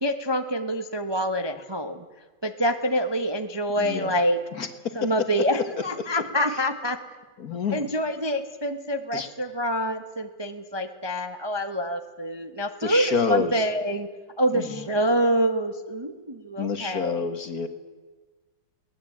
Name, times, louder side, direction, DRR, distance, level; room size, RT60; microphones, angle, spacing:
voice 1, 0.0-2.0 2.4-4.4 4.9-7.0 7.7-14.1 14.4-17.2, equal, 15° right, 6 dB, 1.0 m, -26 dB
voice 2, 3.8-4.1 4.5-4.7 5.0-5.3 6.0-6.1 7.4-7.8 9.1-9.3 12.8-13.7 14.5-14.8 16.6-17.7, left 5 dB, 45° left, 9 dB, 1.9 m, -28 dB
23.0 x 18.5 x 8.7 m, 1.3 s
omnidirectional pair, 2.4 m